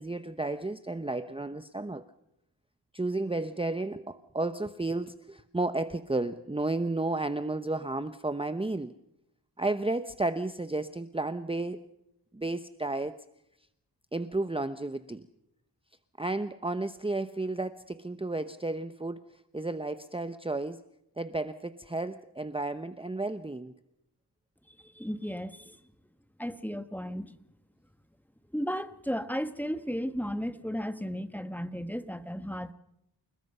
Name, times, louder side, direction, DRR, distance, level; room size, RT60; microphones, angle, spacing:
voice 1, 0.0-2.1 2.9-8.9 9.6-11.8 12.3-13.2 14.1-15.2 16.2-20.8 21.2-23.7, right 2 dB, 15° right, 0.9 m, -32 dB
voice 2, 25.0-25.7 26.4-27.3 28.5-32.7, equal, 5° left, 1.3 m, -34 dB
29.5 x 19.5 x 5.6 m
wide cardioid pair, 65°, 42 cm